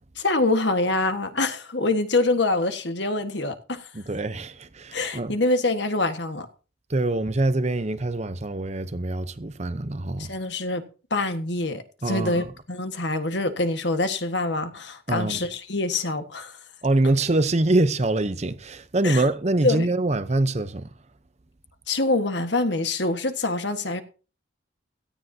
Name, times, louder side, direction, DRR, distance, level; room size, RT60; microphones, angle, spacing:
voice 1, 0.2-3.9 4.9-6.5 10.2-16.5 19.0-19.3 19.6-19.9 21.9-24.0, left 2 dB, 70° left, 1.6 m, -25 dB
voice 2, 3.9-5.3 6.9-10.3 12.0-12.5 15.1-15.4 16.8-20.9, right 2 dB, 35° right, 0.8 m, -24 dB
17.0 x 13.5 x 2.8 m
head